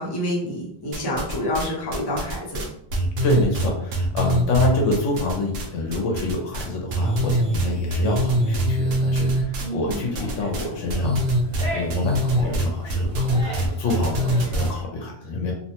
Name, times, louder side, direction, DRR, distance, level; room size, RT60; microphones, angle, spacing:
voice 1, 0.0-2.6 9.6-10.1, left 1 dB, 25° left, -5 dB, 0.6 m, -28 dB
sound 1, 0.9-1.7 1.9-5.7 5.9-6.7 6.9-14.7, right 1 dB, 75° right, 1.0 m, -23 dB
voice 2, 3.2-11.3 11.7-15.5, left 2 dB, 75° left, 0 dB, 0.9 m, -27 dB
sound 2, 9.8-14.8, left 1 dB, 5° left, 1.0 m, -37 dB
2.7 x 2.1 x 2.9 m, 0.71 s
omnidirectional pair, 1.3 m